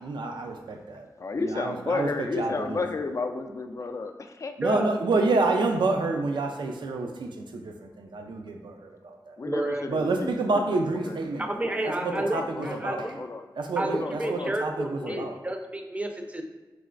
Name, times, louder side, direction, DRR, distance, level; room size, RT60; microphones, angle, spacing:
voice 1, 0.0-1.1 1.4-2.8 4.6-9.4 9.9-13.1 13.6-15.4, right 3 dB, 85° right, 4 dB, 0.5 m, -29 dB
voice 2, 1.2-4.5 9.4-10.3 10.6-10.7 11.1-11.2 11.6-13.4 13.9-14.5 15.0-15.3, left 3 dB, 40° left, 6 dB, 0.3 m, -32 dB
voice 3, 4.6-4.9 9.4-9.9 11.5-13.2 13.8-16.4, right 1 dB, 15° right, 4 dB, 0.5 m, -31 dB
3.3 x 3.1 x 3.8 m, 1.2 s
wide cardioid pair, 70°, 8 cm